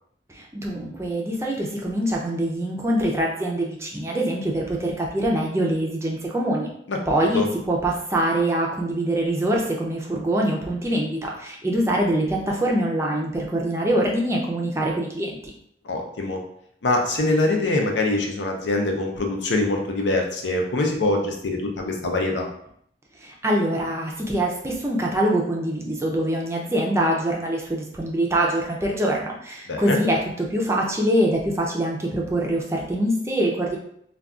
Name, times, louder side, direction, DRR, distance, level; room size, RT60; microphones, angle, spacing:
voice 1, 0.3-6.7 7.1-7.4 7.7-15.5 23.2-33.8, right 1 dB, 15° right, -1 dB, 0.4 m, -24 dB
voice 2, 6.9-7.5 15.8-16.4 16.8-22.5 29.7-30.0, left 2 dB, 85° left, 2 dB, 0.6 m, -24 dB
2.4 x 2.3 x 3.6 m, 0.69 s
head